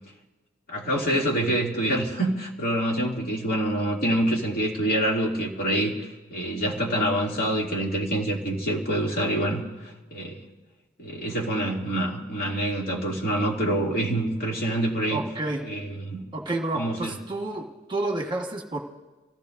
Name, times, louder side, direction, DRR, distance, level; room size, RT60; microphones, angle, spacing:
voice 1, 0.7-5.9 6.3-10.4 11.0-15.2 15.6-16.2 16.7-17.2, right 1 dB, 50° left, -3 dB, 2.6 m, -26 dB
voice 2, 15.1-15.7 16.3-18.8, right 2 dB, 25° right, 1 dB, 1.4 m, -30 dB
29.0 x 16.0 x 2.6 m, 1.2 s
head